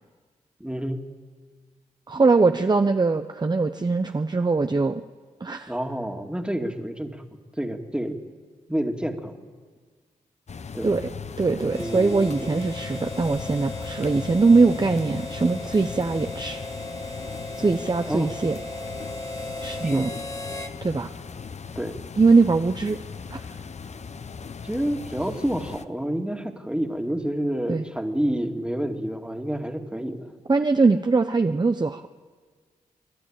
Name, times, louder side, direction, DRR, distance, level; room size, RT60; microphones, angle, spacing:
voice 1, 0.6-1.0 5.7-7.2 7.6-8.2 8.7-9.5 10.7-11.0 11.7-12.6 18.1-18.3 19.8-20.1 21.8-22.0 24.6-30.3, right 1 dB, 5° right, 4 dB, 2.3 m, -29 dB
voice 2, 2.1-5.0 5.4-5.7 10.8-11.1 11.4-16.6 17.6-18.6 19.6-20.1 20.8-21.1 22.2-23.0 23.3-23.5 27.7-27.8 30.5-32.1, right 3 dB, 30° right, 7 dB, 0.8 m, -21 dB
sound 1, 10.5-25.9, left 5 dB, 50° left, 0.8 m, -38 dB
Harmonica, 11.7-20.8, left 1 dB, 20° left, 1.9 m, -37 dB
28.5 x 11.0 x 8.9 m, 1.5 s
supercardioid pair, 45°, 15 cm